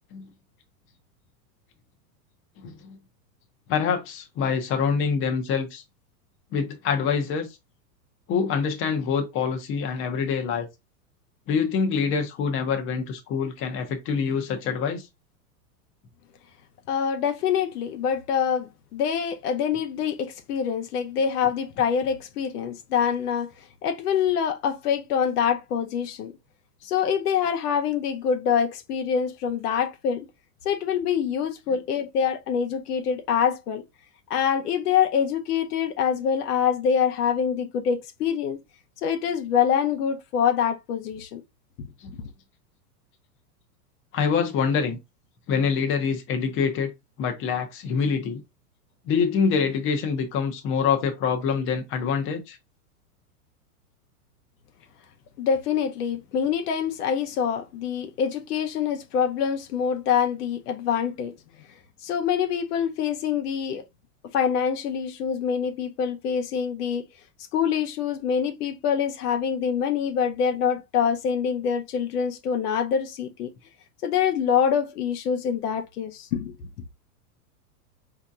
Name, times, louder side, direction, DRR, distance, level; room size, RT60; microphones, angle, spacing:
voice 1, 2.6-3.0 3.7-5.8 6.5-7.5 8.3-10.7 11.5-15.1 42.0-42.1 44.1-45.0 45.5-46.9 47.2-48.4 49.1-52.6, left 6 dB, 25° left, 0.7 m, -25 dB
voice 2, 16.9-26.3 26.8-30.3 30.6-33.8 34.3-38.6 39.0-41.4 41.8-41.9 55.4-61.3 62.0-63.8 64.3-67.0 67.5-73.5 74.0-76.7, left 7 dB, 75° left, 0.8 m, -25 dB
4.2 x 2.8 x 2.3 m
hypercardioid pair, 125°, 46 cm